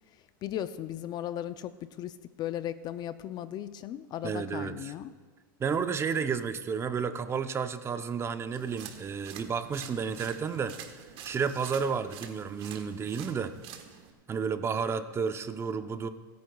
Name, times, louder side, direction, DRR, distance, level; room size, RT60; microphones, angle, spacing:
voice 1, 0.4-5.1, left 11 dB, 40° left, 13 dB, 0.4 m, -36 dB
voice 2, 4.2-4.9 5.6-10.8 11.2-13.5 14.3-16.1, right 6 dB, 20° right, 10 dB, 0.6 m, -31 dB
sound 1, 8.5-14.1, right 9 dB, 50° right, 1.2 m, -47 dB
26.5 x 9.3 x 2.3 m, 1.4 s
supercardioid pair, 125°, 11 cm